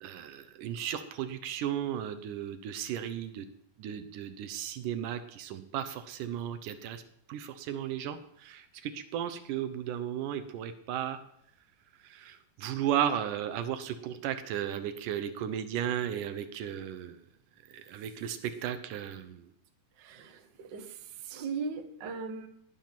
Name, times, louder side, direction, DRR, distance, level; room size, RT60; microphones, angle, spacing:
voice 1, 0.0-3.5 3.8-7.0 7.3-11.2 12.0-17.2 17.7-19.5, right 10 dB, 75° right, 11 dB, 2.4 m, -35 dB
voice 2, 20.0-22.5, right 4 dB, 45° right, 5 dB, 1.5 m, -39 dB
19.5 x 9.1 x 6.0 m, 0.73 s
omnidirectional pair, 3.9 m